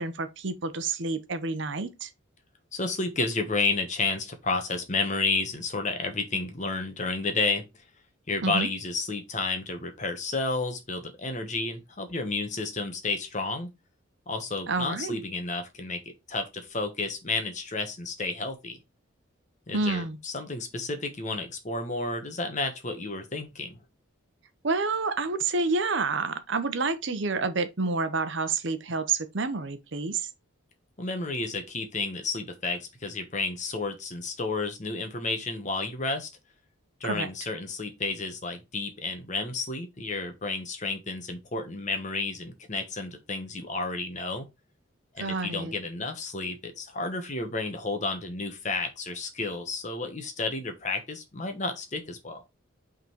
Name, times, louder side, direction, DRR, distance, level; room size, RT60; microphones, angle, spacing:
voice 1, 0.0-2.1 8.4-8.7 14.7-15.2 19.7-20.2 24.6-30.3 37.0-37.3 45.2-45.7, right 3 dB, 60° right, 0.8 m, -29 dB
voice 2, 2.7-7.6 8.3-13.7 14.3-16.0 16.3-18.8 19.7-23.8 31.0-36.3 37.0-44.5 45.1-52.4, left 3 dB, 35° left, 1.2 m, -31 dB
5.9 x 3.9 x 4.5 m
head